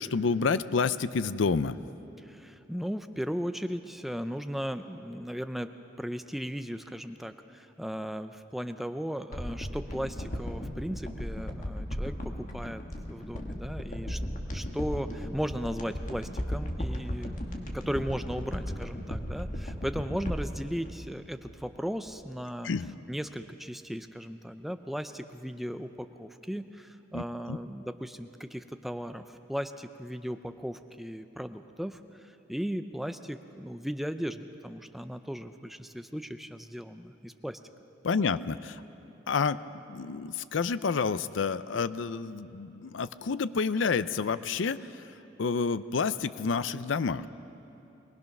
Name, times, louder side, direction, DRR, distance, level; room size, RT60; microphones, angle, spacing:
voice 1, 0.0-1.8 22.6-22.9 27.1-27.6 38.0-38.8 39.3-39.6 39.9-44.8 45.4-47.3, left 5 dB, 85° left, 15 dB, 0.5 m, -29 dB
voice 2, 2.2-5.7 6.0-12.8 13.1-14.2 14.5-22.7 23.1-32.0 32.5-37.6, equal, ahead, 9 dB, 0.5 m, -36 dB
sound 1, 9.3-21.8 22.1-22.2, equal, 45° left, 1.7 m, -36 dB
23.0 x 19.0 x 6.0 m, 3.0 s
head